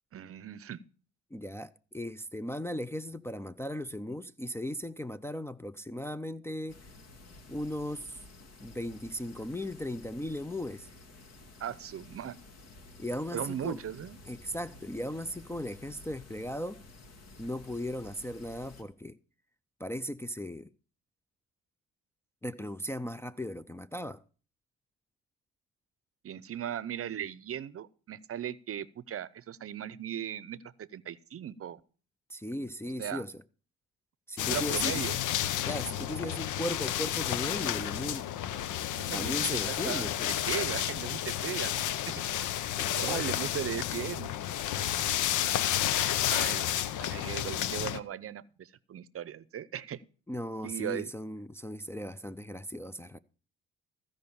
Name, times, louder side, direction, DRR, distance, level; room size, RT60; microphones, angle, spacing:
voice 1, 0.1-0.8 11.6-12.4 13.3-14.2 26.2-31.8 33.0-33.2 34.5-35.2 38.9-42.5 42.9-44.3 46.3-46.7 47.0-50.0 50.6-51.1, right 10 dB, 50° right, 0.7 m, -38 dB
voice 2, 1.3-6.8 7.5-8.2 8.6-10.9 13.0-13.8 14.3-16.8 17.4-19.2 19.8-20.7 22.4-24.2 32.3-33.3 34.3-35.0 35.7-38.3 39.1-40.3 42.8-43.2 50.3-53.2, left 1 dB, 10° left, 0.4 m, -37 dB
sound 1, 6.7-18.8, left 2 dB, 55° left, 2.3 m, -52 dB
sound 2, 34.4-48.0, left 11 dB, 80° left, 0.8 m, -31 dB
15.0 x 5.3 x 7.0 m
cardioid pair, 90°, 30 cm